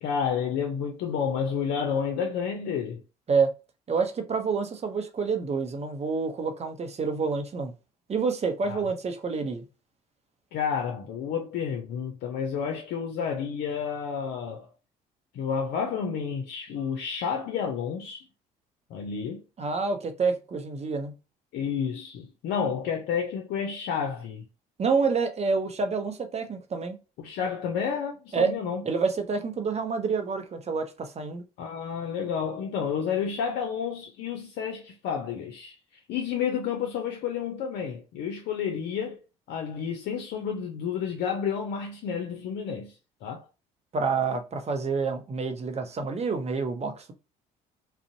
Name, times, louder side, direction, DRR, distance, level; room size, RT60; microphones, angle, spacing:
voice 1, 0.0-3.0 8.6-8.8 10.5-14.7 15.3-18.3 18.9-19.4 21.5-24.5 27.2-28.8 31.6-35.8 36.1-39.2 39.5-43.0 43.2-43.4, left 7 dB, 60° left, 0.5 m, -30 dB
voice 2, 3.9-7.7 8.1-9.7 19.6-21.1 24.8-27.0 28.3-28.5 28.8-31.4 43.9-47.1, right 4 dB, 30° right, 0.6 m, -28 dB
2.5 x 2.0 x 2.6 m
hypercardioid pair, 55°, 20 cm